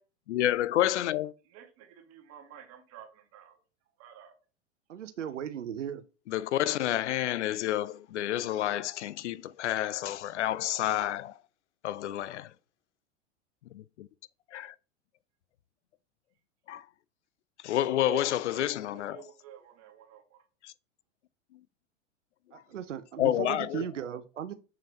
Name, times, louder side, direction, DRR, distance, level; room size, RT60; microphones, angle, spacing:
voice 1, 0.3-1.3 6.3-11.4 11.8-12.5 13.7-14.1 14.5-14.7 16.7-16.9 17.6-19.2 20.6-20.7 21.5-21.6 23.2-23.9, left 13 dB, 75° left, 0.6 m, -29 dB
voice 2, 1.5-3.6 4.0-4.3 18.0-18.2 18.5-20.4, right 10 dB, 40° right, 1.9 m, -49 dB
voice 3, 4.9-6.0 22.5-24.5, right 9 dB, 85° right, 0.7 m, -37 dB
7.2 x 5.7 x 3.0 m
hypercardioid pair, 95°, 36 cm